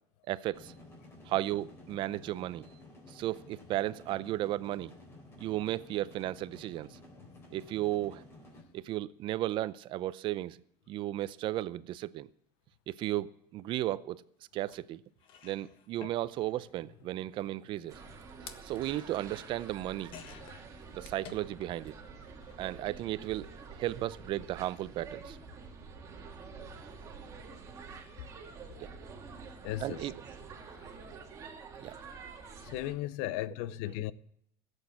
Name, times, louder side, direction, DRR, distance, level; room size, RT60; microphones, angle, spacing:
voice 1, 0.3-0.7 1.3-2.7 3.1-4.9 5.4-7.0 7.5-8.2 8.7-10.6 10.9-12.3 12.9-14.2 14.5-15.0 15.4-17.9 18.6-20.1 20.9-21.9 22.6-25.4 28.8-28.9 29.8-30.2 31.8-31.9, right 14 dB, 45° right, 0.6 m, -34 dB
sound 1, 0.5-8.6, left 2 dB, 20° left, 3.9 m, -53 dB
sound 2, 14.7-14.8 15.2-21.9 22.2-23.0 24.0-24.2 24.4-24.5, left 8 dB, 50° left, 1.5 m, -54 dB
sound 3, 17.9-32.9, right 5 dB, 25° right, 2.4 m, -48 dB
voice 2, 29.6-30.1 32.6-34.1, left 15 dB, 70° left, 0.7 m, -36 dB
16.0 x 8.2 x 8.5 m
cardioid pair, 145°, 11 cm